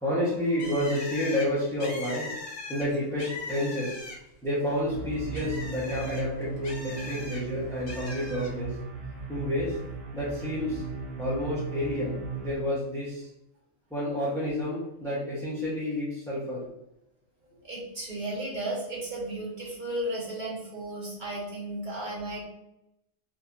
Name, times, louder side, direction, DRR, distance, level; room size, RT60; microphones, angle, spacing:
voice 1, 0.0-2.3 2.7-4.0 4.4-8.8 9.3-9.8 10.1-10.8 11.2-12.2 12.4-13.3 13.9-16.7 21.9-22.0, left 1 dB, ahead, -10 dB, 1.3 m, -30 dB
Bird, 0.6-4.4 4.8-7.4 7.9-8.5, left 2 dB, 60° left, 1.3 m, -40 dB
sound 1, 4.8-12.5, right 4 dB, 60° right, 2.0 m, -37 dB
voice 2, 17.6-22.4, right 1 dB, 35° right, -5 dB, 1.5 m, -34 dB
5.0 x 3.1 x 2.8 m, 0.85 s
omnidirectional pair, 1.3 m